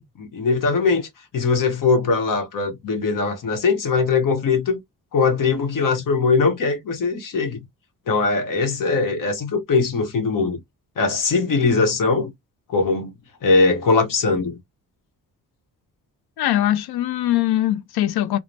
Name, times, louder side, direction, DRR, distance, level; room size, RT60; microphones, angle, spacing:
voice 1, 0.0-4.8 5.1-7.6 8.1-10.6 11.0-12.3 12.7-13.1 13.4-14.6, left 4 dB, 60° left, 0.9 m, -21 dB
voice 2, 16.4-18.4, left 13 dB, 85° left, 0.5 m, -21 dB
3.2 x 2.0 x 2.6 m
wide cardioid pair, 130°, 37 cm